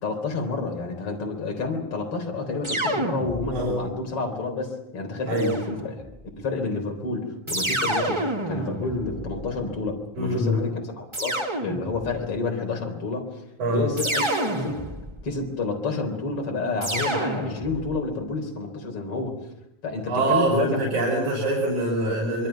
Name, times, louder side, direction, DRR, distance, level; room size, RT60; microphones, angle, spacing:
voice 1, 0.0-6.0 6.4-13.3 13.7-14.8 15.2-19.4 19.8-20.9, left 3 dB, 50° left, 2 dB, 4.8 m, -29 dB
sound 1, 2.6-3.8 5.4-6.2 7.5-9.8 11.1-12.2 14.0-15.3 16.8-18.0, right 1 dB, 15° right, 1.1 m, -29 dB
voice 2, 3.5-3.8 5.3-5.5 10.2-10.6 13.6-13.9 20.1-22.5, right 2 dB, 85° right, -3 dB, 7.1 m, -24 dB
26.0 x 23.5 x 5.9 m, 0.82 s
omnidirectional pair, 3.3 m